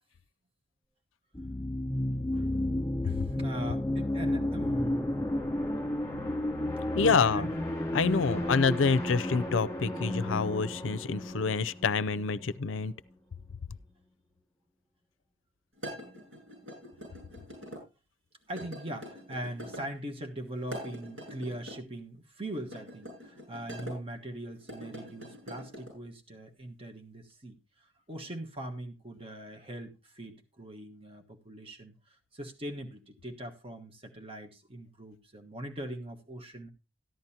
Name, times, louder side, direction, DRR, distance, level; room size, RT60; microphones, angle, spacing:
sound 1, 1.3-12.9, left 1 dB, 15° left, 2.6 m, -32 dB
voice 1, 3.0-5.1 7.0-7.6 18.5-36.7, right 1 dB, 30° right, 1.3 m, -41 dB
voice 2, 6.9-7.5 7.9-12.9, left 5 dB, 80° left, 0.5 m, -27 dB
sound 2, 15.8-17.8 18.5-19.9 20.6-21.8 22.6-24.0 24.6-25.9, equal, 90° right, 7.7 m, -44 dB
14.0 x 10.5 x 2.8 m
head